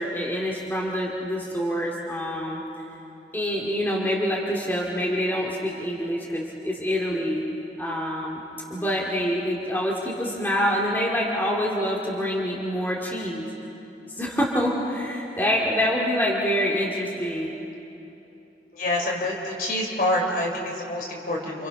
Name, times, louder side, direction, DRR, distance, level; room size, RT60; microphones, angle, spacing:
voice 1, 0.0-2.6 3.3-7.4 7.8-8.4 8.7-13.5 14.1-17.5, equal, 10° left, -4 dB, 2.3 m, -26 dB
voice 2, 18.7-21.7, left 1 dB, 50° left, 0 dB, 3.6 m, -27 dB
29.0 x 26.0 x 5.9 m, 3.0 s
head